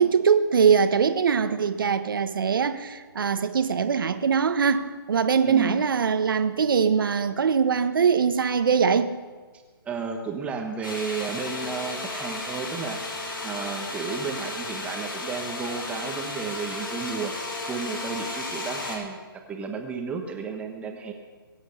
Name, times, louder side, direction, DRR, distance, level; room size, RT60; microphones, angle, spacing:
voice 1, 0.0-9.1, right 6 dB, 60° right, 9 dB, 1.3 m, -22 dB
voice 2, 5.5-5.8 9.8-13.0 13.4-17.3 17.7-21.1, right 5 dB, 10° right, 3 dB, 1.2 m, -33 dB
sound 1, 10.8-19.0, left 2 dB, 60° left, 5.3 m, -34 dB
23.0 x 8.1 x 6.8 m, 1.4 s
hypercardioid pair, 150°, 13 cm